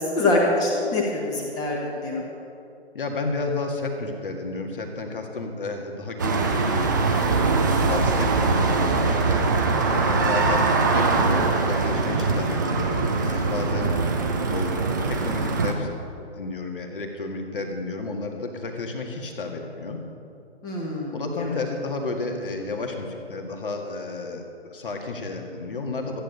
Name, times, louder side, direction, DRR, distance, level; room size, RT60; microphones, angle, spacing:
voice 1, 0.0-2.2 20.6-21.6, left 2 dB, 10° left, -2 dB, 1.5 m, -25 dB
voice 2, 2.9-9.4 9.9-13.9 14.5-14.8 15.0-15.9 16.4-20.0 21.1-26.2, left 3 dB, 50° left, 3 dB, 1.9 m, -32 dB
sound 1, 6.2-15.7, right 3 dB, 20° right, 0.6 m, -22 dB
14.0 x 9.7 x 6.7 m, 2.6 s
figure-of-eight pair, 140°, 34 cm